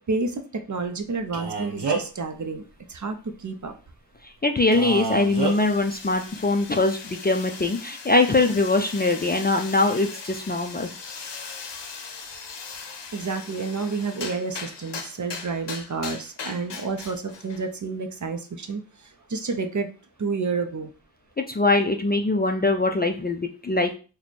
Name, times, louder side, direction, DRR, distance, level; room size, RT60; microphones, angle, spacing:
voice 1, 0.1-2.6 2.9-3.7 13.1-19.9 20.2-20.9, right 4 dB, 45° right, 6 dB, 0.6 m, -30 dB
Male speech man speaking, 1.3-2.2 4.7-5.5, right 4 dB, 75° right, 0.9 m, -28 dB
voice 2, 4.2-10.9 21.4-24.0, left 2 dB, 25° left, 4 dB, 0.3 m, -22 dB
sound 1, 4.6-17.7, left 5 dB, 85° left, 0.6 m, -39 dB
3.1 x 2.2 x 4.1 m, 0.35 s
wide cardioid pair, 65°, 41 cm